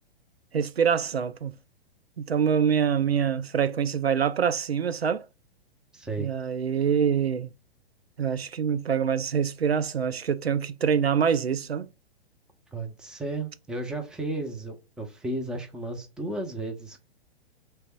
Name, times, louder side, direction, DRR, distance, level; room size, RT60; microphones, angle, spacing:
voice 1, 0.5-1.5 2.2-5.3 6.2-7.5 8.2-11.9, right 7 dB, 80° right, 0.5 m, -25 dB
voice 2, 5.9-6.3 12.7-17.0, right 2 dB, ahead, 0.6 m, -33 dB
3.4 x 3.2 x 4.3 m
figure-of-eight pair, 110°, 30 cm